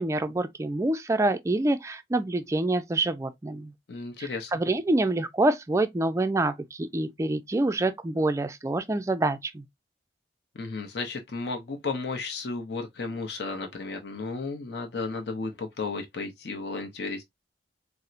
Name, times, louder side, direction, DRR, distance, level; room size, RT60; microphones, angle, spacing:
voice 1, 0.0-3.7 4.2-9.6, right 2 dB, 15° right, 0.3 m, -26 dB
voice 2, 3.9-4.5 10.6-17.2, left 3 dB, 65° left, 0.6 m, -33 dB
4.2 x 2.0 x 2.4 m
head